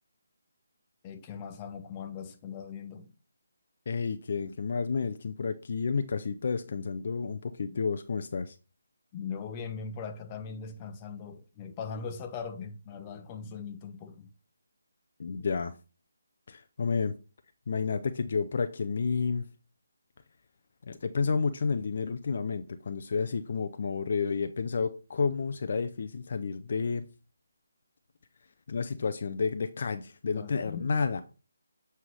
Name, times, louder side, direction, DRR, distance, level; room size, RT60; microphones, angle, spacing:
voice 1, 1.0-3.1 9.1-14.3 30.3-30.9, left 6 dB, 25° left, 0.9 m, -40 dB
voice 2, 3.9-8.6 15.2-15.7 16.5-17.1 17.7-19.4 20.8-27.1 28.7-31.2, left 5 dB, 50° left, 0.5 m, -30 dB
7.9 x 5.6 x 3.2 m
figure-of-eight pair, 150°, 0 cm